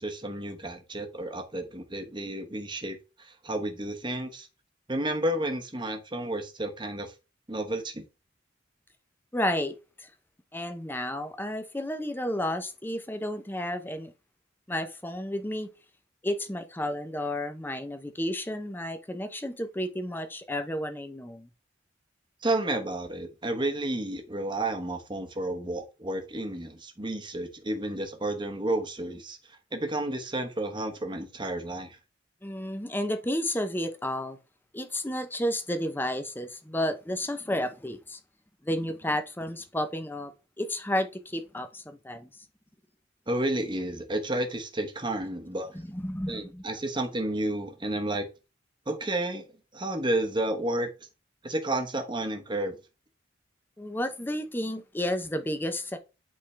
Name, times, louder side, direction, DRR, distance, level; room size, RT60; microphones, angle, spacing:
voice 1, 0.0-4.5 4.9-7.1 7.5-8.0 22.4-29.4 29.7-32.0 43.3-45.7 46.3-48.3 48.9-49.4 49.7-50.9 51.4-52.8, right 1 dB, 25° right, 1.0 m, -31 dB
voice 2, 9.3-10.1 10.5-14.1 14.7-15.7 16.2-21.5 32.4-34.4 34.7-38.2 38.6-40.3 40.6-42.3 45.7-46.6 53.8-56.0, left 1 dB, 10° left, 0.7 m, -32 dB
8.5 x 3.7 x 3.3 m
head